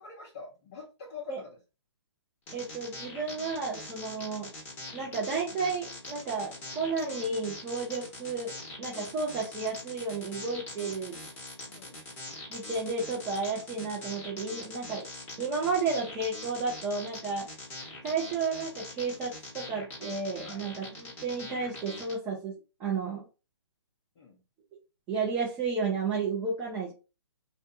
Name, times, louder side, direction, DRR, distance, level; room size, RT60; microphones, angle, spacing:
voice 1, 0.0-1.5 11.7-12.0 20.4-20.8 24.2-24.4, left 5 dB, 30° left, -3 dB, 0.6 m, -45 dB
sound 1, 2.5-22.1, left 2 dB, 15° left, 0.9 m, -43 dB
voice 2, 2.5-4.5 4.9-8.5 8.8-11.2 12.5-15.1 15.4-17.5 18.0-22.5 22.8-23.2 25.1-26.9, right 4 dB, 15° right, -4 dB, 0.6 m, -32 dB
2.5 x 2.2 x 2.6 m, 0.32 s
figure-of-eight pair, 140°, 15 cm